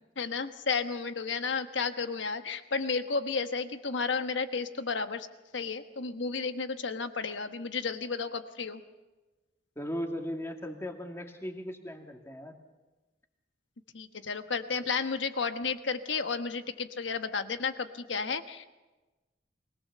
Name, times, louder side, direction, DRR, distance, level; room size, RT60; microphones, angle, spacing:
voice 1, 0.2-5.3 5.5-8.8 13.9-18.6, left 5 dB, 80° left, 8 dB, 1.2 m, -32 dB
voice 2, 9.8-12.6, equal, 15° left, 2 dB, 2.2 m, -37 dB
23.0 x 18.0 x 6.8 m, 1.2 s
head